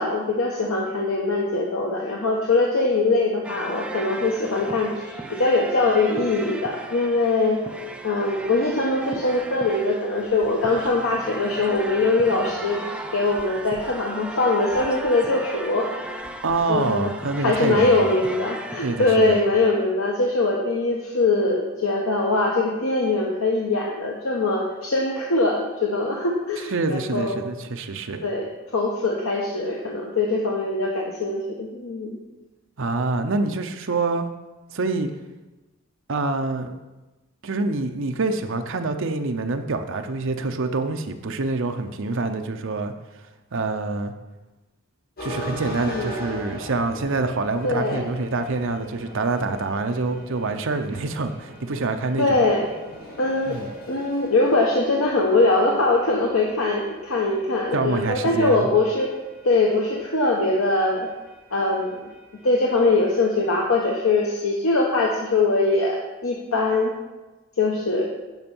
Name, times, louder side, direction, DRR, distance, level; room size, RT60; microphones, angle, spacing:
voice 1, 0.0-7.6 8.0-16.2 16.7-17.1 17.4-27.4 28.2-32.2 45.7-46.1 47.6-48.1 52.2-52.6 53.2-53.6 53.9-59.1 59.4-61.1 61.5-62.1 62.4-66.0 66.2-66.9 67.6-68.0, left 2 dB, 80° left, -2 dB, 1.1 m, -22 dB
sound 1, 3.4-19.4, right 1 dB, 5° right, 0.5 m, -37 dB
voice 2, 16.4-18.1 18.8-19.4 26.7-28.2 32.8-34.3 34.7-35.1 36.1-36.8 37.4-42.9 43.5-44.1 45.2-52.4 53.5-53.7 57.7-58.7, right 3 dB, 65° right, 7 dB, 0.7 m, -26 dB
sound 2, 45.2-63.8, equal, 50° left, 1.9 m, -42 dB
9.4 x 5.3 x 5.5 m, 1.1 s
head